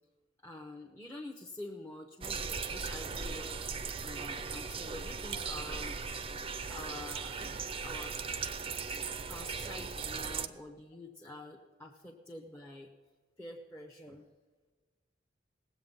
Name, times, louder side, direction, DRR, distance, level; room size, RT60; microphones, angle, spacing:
voice 1, 0.4-3.7 4.0-6.0 6.7-7.4 7.8-8.1 9.3-12.9 13.4-14.2, left 1 dB, 15° left, -2 dB, 1.1 m, -47 dB
sound 1, 2.2-10.5, right 5 dB, 30° right, 0.6 m, -38 dB
19.5 x 8.2 x 5.5 m, 1.4 s
head